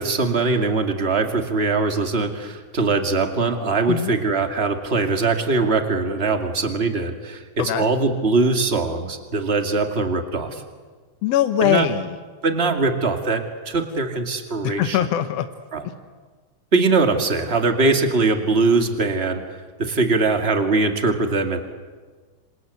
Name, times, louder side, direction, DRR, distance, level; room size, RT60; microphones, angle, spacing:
voice 1, 0.0-10.6 11.6-11.9 12.4-15.0 15.7-15.9 16.7-19.4 19.8-21.6, right 3 dB, 20° right, 5 dB, 2.0 m, -21 dB
voice 2, 11.2-12.2 14.6-15.5, left 11 dB, 65° left, 9 dB, 1.8 m, -21 dB
27.0 x 26.5 x 8.3 m, 1.4 s
omnidirectional pair, 3.7 m